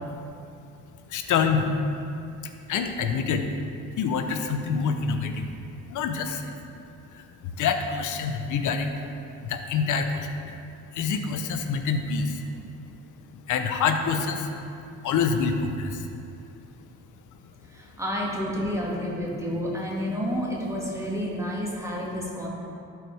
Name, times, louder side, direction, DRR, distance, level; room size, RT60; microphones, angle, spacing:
voice 1, 1.1-1.7 2.4-3.5 4.0-5.5 5.9-6.5 7.1-8.9 9.4-10.5 10.9-12.4 13.3-14.5 15.0-16.1, left 5 dB, 70° left, 6 dB, 0.8 m, -26 dB
voice 2, 17.7-22.5, equal, 10° right, -4 dB, 1.8 m, -30 dB
12.0 x 4.8 x 3.4 m, 2.6 s
supercardioid pair, 80°, 32 cm